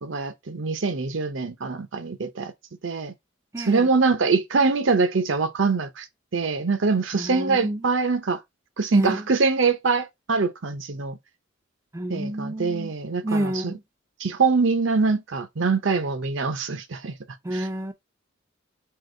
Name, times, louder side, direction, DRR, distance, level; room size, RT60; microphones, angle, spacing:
voice 1, 0.0-2.5 2.8-3.1 3.6-6.0 6.3-8.4 8.8-11.2 12.1-13.7 14.2-17.2 17.5-17.7, right 4 dB, 65° right, 0.7 m, -24 dB
voice 2, 3.5-3.9 7.1-7.9 8.9-9.3 11.9-12.9 13.2-13.8 17.4-17.9, right 1 dB, 15° right, 0.4 m, -29 dB
3.9 x 2.9 x 3.7 m
head